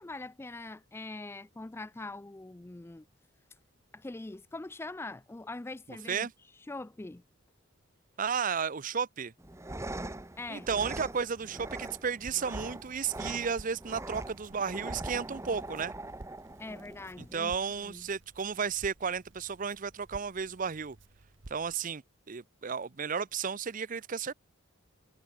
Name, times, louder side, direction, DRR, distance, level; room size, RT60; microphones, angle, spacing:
voice 1, 0.0-3.1 3.9-6.3 6.7-7.2 10.4-10.7 16.6-18.1, left 2 dB, 10° left, 0.3 m, -43 dB
voice 2, 8.2-9.3 10.5-15.9 17.2-21.0 21.5-24.3, right 6 dB, 40° right, 0.6 m, -33 dB
sound 1, 9.4-17.4, right 2 dB, 15° right, 0.9 m, -42 dB
Crackle, 10.8-21.7, right 2 dB, 60° right, 1.3 m, -54 dB
head